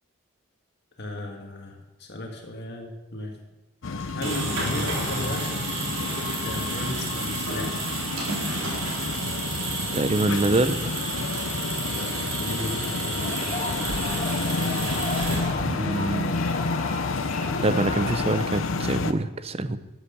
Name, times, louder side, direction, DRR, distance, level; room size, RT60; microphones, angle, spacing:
voice 1, 1.0-3.4 4.1-5.6 6.0-7.8 8.4-8.9 11.9-14.8 19.6-19.8, left 1 dB, 50° left, 1 dB, 1.9 m, -36 dB
sound 1, 3.8-19.1, left 3 dB, 70° left, 0.7 m, -30 dB
sound 2, 4.0-15.8, right 3 dB, 75° right, 4.3 m, -31 dB
voice 2, 9.9-10.9 15.6-16.4 17.6-19.8, right 2 dB, 30° right, 12 dB, 0.6 m, -25 dB
sound 3, 13.1-18.5, left 3 dB, 35° left, 1.4 m, -34 dB
13.0 x 8.1 x 6.8 m, 1.1 s
head